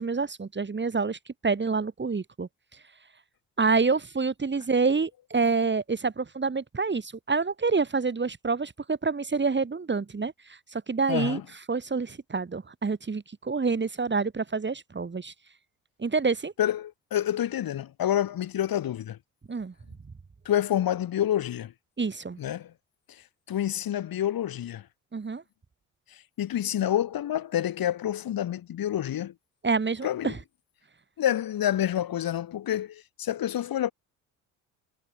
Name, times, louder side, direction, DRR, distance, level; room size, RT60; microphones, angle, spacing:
voice 1, 0.0-2.5 3.6-11.4 11.7-15.3 16.0-16.5 19.5-19.7 22.0-22.4 25.1-25.4 29.6-30.4, right 4 dB, 25° right, 3.2 m, -27 dB
voice 2, 11.1-11.4 16.6-19.2 20.4-21.7 22.4-22.7 23.5-24.9 26.1-29.3 30.0-30.3 31.2-33.9, left 11 dB, 55° left, 7.8 m, -28 dB
hypercardioid pair, 55°, 41 cm